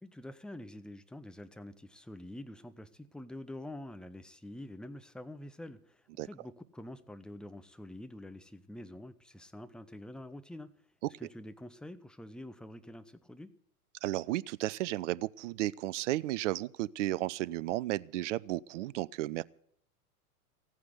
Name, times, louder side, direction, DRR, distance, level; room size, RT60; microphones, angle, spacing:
voice 1, 0.0-10.7 11.2-13.5, left 1 dB, ahead, 0.8 m, -47 dB
voice 2, 14.0-19.4, right 16 dB, 55° right, 0.7 m, -33 dB
15.5 x 9.5 x 7.8 m
hypercardioid pair, 100°, 45 cm